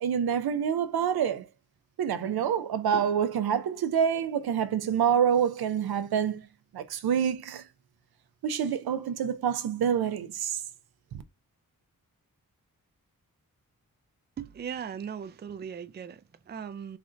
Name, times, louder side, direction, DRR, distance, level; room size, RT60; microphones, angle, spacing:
voice 1, 0.0-1.4 2.0-6.4 6.7-7.6 8.4-10.6 11.1-11.2, right 8 dB, 80° right, 0.5 m, -27 dB
voice 2, 14.4-17.0, right 7 dB, 30° right, 0.3 m, -38 dB
3.2 x 2.5 x 3.7 m
cardioid pair, 55°, 37 cm